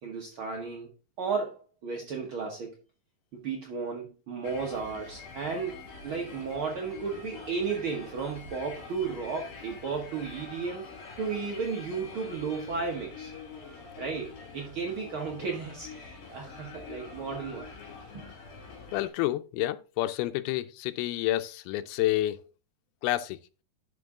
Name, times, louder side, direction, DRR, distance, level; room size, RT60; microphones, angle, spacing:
voice 1, 0.0-0.9 1.2-2.8 3.3-10.9 11.2-13.3 14.0-16.0 16.3-17.7 18.1-18.2, right 5 dB, 70° right, 1.2 m, -34 dB
sound 1, 4.4-19.1, left 4 dB, 60° left, 4.1 m, -45 dB
voice 2, 18.9-22.4 23.0-23.4, left 15 dB, 85° left, 2.6 m, -29 dB
11.5 x 5.4 x 3.7 m
omnidirectional pair, 4.4 m